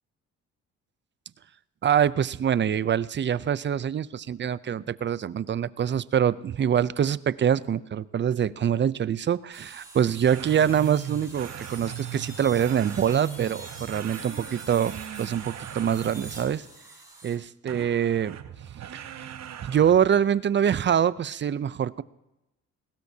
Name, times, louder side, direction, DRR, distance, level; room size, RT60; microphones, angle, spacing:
voice 1, 1.8-16.6 17.2-18.4 18.9-19.0 19.6-22.0, right 9 dB, 40° right, 18 dB, 0.6 m, -25 dB
sound 1, 9.5-17.4, right 2 dB, 10° right, 6.0 m, -45 dB
sound 2, 10.3-16.7 17.7-20.3, right 10 dB, 60° right, 1.1 m, -39 dB
21.0 x 17.5 x 2.8 m, 0.96 s
cardioid pair, 90°, 30 cm